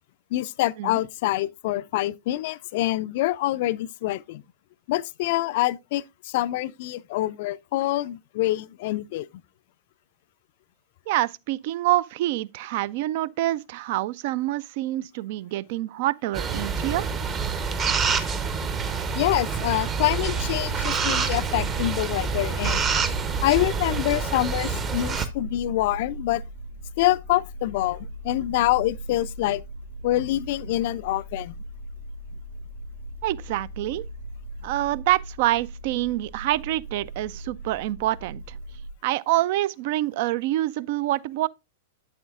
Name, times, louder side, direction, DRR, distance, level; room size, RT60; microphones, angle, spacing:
voice 1, 0.3-4.4 4.9-9.3 19.1-22.8 23.4-26.4 27.0-29.6 30.0-31.6, left 16 dB, 50° left, 0.3 m, -26 dB
voice 2, 11.1-17.1 33.2-34.0 34.6-38.6 39.0-41.5, right 15 dB, 50° right, 0.3 m, -26 dB
sound 1, 16.3-25.3, right 5 dB, 25° right, 0.8 m, -27 dB
sound 2, 20.2-38.9, right 1 dB, 80° right, 1.5 m, -39 dB
8.3 x 7.8 x 2.4 m
figure-of-eight pair, 100°, 0 cm